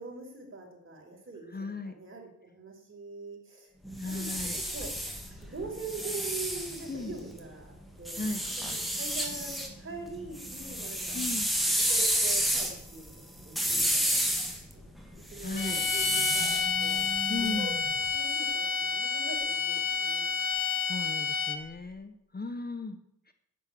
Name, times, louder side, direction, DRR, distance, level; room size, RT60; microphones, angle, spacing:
voice 1, 0.0-1.6 1.8-2.3 2.5-4.3 4.7-4.9 5.4-7.7 8.0-11.2 11.6-14.2 14.7-14.9 15.3-17.7 18.1-20.2, right 3 dB, 40° right, 0 dB, 5.4 m, -43 dB
voice 2, 1.5-1.9 4.0-4.6 6.9-7.1 8.2-8.4 11.1-11.5 15.4-15.9 17.3-17.7 20.4-20.5 20.8-23.0 23.3-23.4, left 3 dB, 30° left, 9 dB, 1.2 m, -36 dB
sound 1, 3.8-7.4 8.1-9.7 10.1-18.0, equal, ahead, 3.2 m, -31 dB
sound 2, 15.6-21.8, left 6 dB, 80° left, 1.4 m, -30 dB
10.5 x 9.8 x 8.8 m, 0.77 s
cardioid pair, 90°, 32 cm